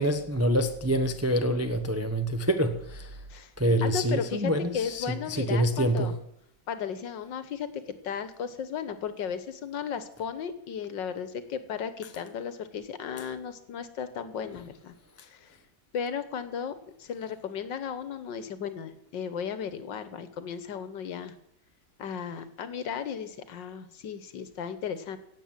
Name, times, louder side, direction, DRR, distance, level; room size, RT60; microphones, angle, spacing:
voice 1, 0.0-3.2 3.6-6.1, right 1 dB, 20° right, 0.4 m, -26 dB
voice 2, 3.8-6.1 6.7-14.9 15.2-15.6 15.9-16.7 17.0-21.3 22.0-25.2, left 7 dB, 70° left, 1.7 m, -35 dB
16.5 x 8.1 x 7.4 m
omnidirectional pair, 2.1 m